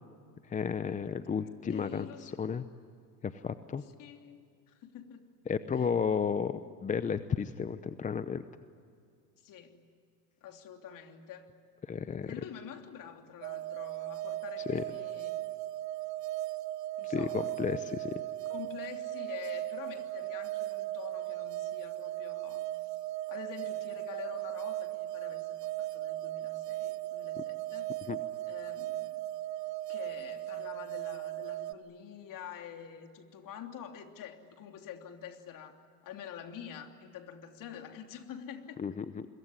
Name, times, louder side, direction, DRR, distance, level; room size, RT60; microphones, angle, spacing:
voice 1, 0.5-2.6 3.2-3.8 5.5-8.4 11.9-12.3 14.7-14.8 17.0-18.1 28.1-28.2 38.8-39.3, left 6 dB, 15° left, 12 dB, 0.7 m, -33 dB
voice 2, 1.4-2.5 4.0-4.4 4.7-5.3 5.7-5.8 9.4-9.9 10.4-11.5 12.3-15.3 17.0-17.5 18.4-23.0 23.3-28.0 28.5-29.3 29.9-35.8 36.0-38.8, left 8 dB, 45° left, 5 dB, 3.3 m, -47 dB
sound 1, 13.4-31.7, right 15 dB, 85° right, 1.2 m, -37 dB
26.5 x 23.0 x 9.8 m, 2.4 s
supercardioid pair, 110°, 46 cm